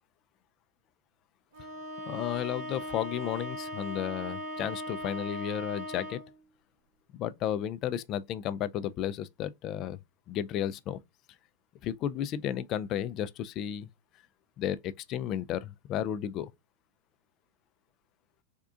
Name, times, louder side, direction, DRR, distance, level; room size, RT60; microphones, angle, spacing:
Bowed string instrument, 1.5-6.4, equal, 75° right, 1.5 m, -39 dB
voice 1, 2.1-6.2 7.2-10.0 10.3-11.0 11.8-13.9 14.6-16.5, left 10 dB, 45° left, 0.4 m, -33 dB
3.6 x 2.4 x 3.7 m
hypercardioid pair, 105°, 0 cm